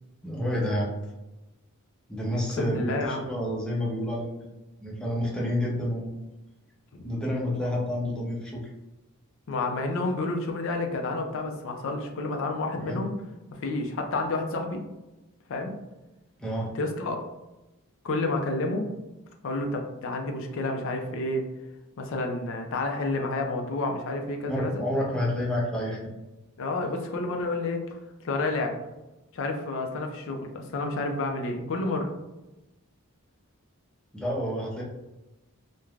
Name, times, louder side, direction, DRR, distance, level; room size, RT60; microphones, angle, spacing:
voice 1, 0.2-0.9 2.1-4.3 4.8-6.1 7.0-8.6 12.8-13.0 16.4-16.7 24.5-26.1 34.1-34.8, equal, 5° left, -5 dB, 0.6 m, -29 dB
voice 2, 2.6-3.3 6.9-7.0 9.5-13.1 13.5-14.8 15.5-15.7 16.7-17.2 18.0-18.8 19.4-21.5 22.0-24.8 26.6-27.8 28.2-28.7 29.3-32.1, left 2 dB, 60° left, 3 dB, 0.4 m, -30 dB
3.1 x 2.2 x 2.4 m, 1.0 s
head